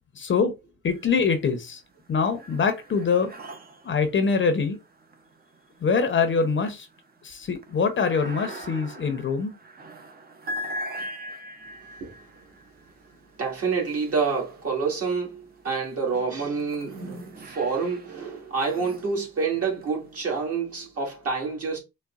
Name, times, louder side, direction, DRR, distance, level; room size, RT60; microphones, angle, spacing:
voice 1, 0.1-0.5 0.8-1.8 2.1-3.3 3.8-4.8 5.8-6.9 7.2-9.5, left 5 dB, 40° left, 0.7 m, -24 dB
sound 1, 0.9-1.5 1.9-15.1 15.7-20.2, equal, 30° right, 0.6 m, -42 dB
voice 2, 13.4-21.8, right 5 dB, 50° right, 1.7 m, -28 dB
4.0 x 2.1 x 2.3 m
cardioid pair, 90°, 30 cm